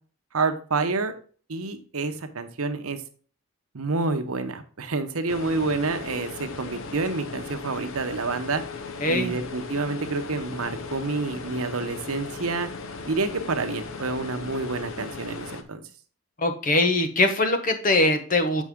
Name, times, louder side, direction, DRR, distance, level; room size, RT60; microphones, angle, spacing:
voice 1, 0.3-1.1 1.5-3.0 3.7-8.6 9.1-12.7 13.1-15.8, right 3 dB, 85° right, 8 dB, 0.9 m, -28 dB
sound 1, 5.3-15.6, left 4 dB, 70° left, 0.7 m, -37 dB
voice 2, 9.0-9.3 16.4-18.6, left 2 dB, 40° left, 7 dB, 0.9 m, -22 dB
7.3 x 5.4 x 3.6 m, 0.41 s
head